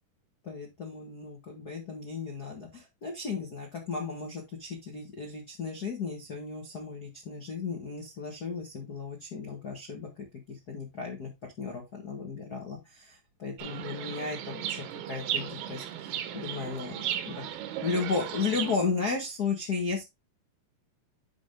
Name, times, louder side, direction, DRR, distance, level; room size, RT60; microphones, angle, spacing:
voice 1, 0.4-11.3 11.6-16.9 17.2-17.4 17.8-20.0, left 4 dB, 60° left, 1 dB, 0.9 m, -35 dB
Chirp tweet, 13.6-18.8, right 10 dB, 90° right, 3.0 m, -35 dB
10.0 x 4.5 x 3.6 m, 0.21 s
omnidirectional pair, 4.4 m